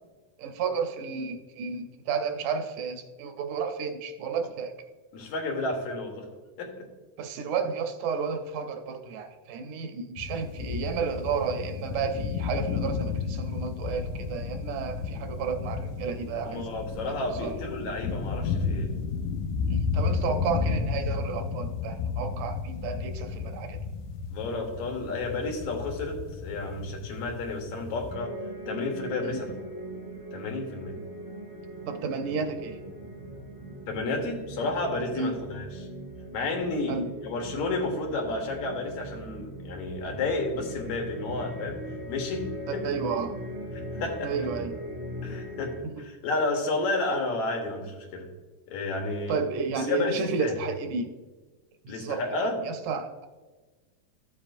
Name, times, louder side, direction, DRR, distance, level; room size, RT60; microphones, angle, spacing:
voice 1, 0.4-4.8 7.2-16.6 17.4-17.5 19.7-23.8 29.2-29.4 31.9-32.8 35.1-35.3 36.9-37.1 42.7-43.3 44.2-44.7 45.8-46.0 49.3-51.1 51.8-52.2 52.6-53.3, right 5 dB, 80° right, 6 dB, 2.3 m, -32 dB
voice 2, 5.1-6.3 6.6-6.7 16.4-18.9 24.3-28.4 28.7-29.5 30.3-31.0 33.9-35.9 36.3-41.8 42.1-42.9 43.9-44.5 45.2-48.3 48.7-49.4 49.8-50.6 51.9-52.6, left 2 dB, 70° left, 2 dB, 2.5 m, -31 dB
sound 1, 10.2-28.1, left 5 dB, 85° left, 2.2 m, -33 dB
sound 2, 13.8-21.1, equal, 30° left, 1.6 m, -44 dB
sound 3, 28.1-45.8, right 1 dB, 35° right, 1.0 m, -40 dB
14.0 x 7.2 x 2.6 m, 1.3 s
omnidirectional pair, 3.5 m